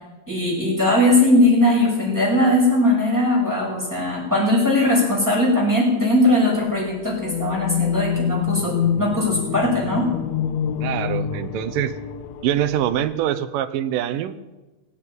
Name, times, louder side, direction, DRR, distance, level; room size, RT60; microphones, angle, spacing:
voice 1, 0.3-10.1, left 1 dB, 5° right, -3 dB, 6.2 m, -19 dB
sound 1, 7.1-13.1, left 8 dB, 75° left, 1.6 m, -26 dB
voice 2, 10.8-12.0 12.4-14.4, right 11 dB, 85° right, 11 dB, 2.4 m, -24 dB
18.0 x 8.5 x 9.1 m, 1.1 s
omnidirectional pair, 3.9 m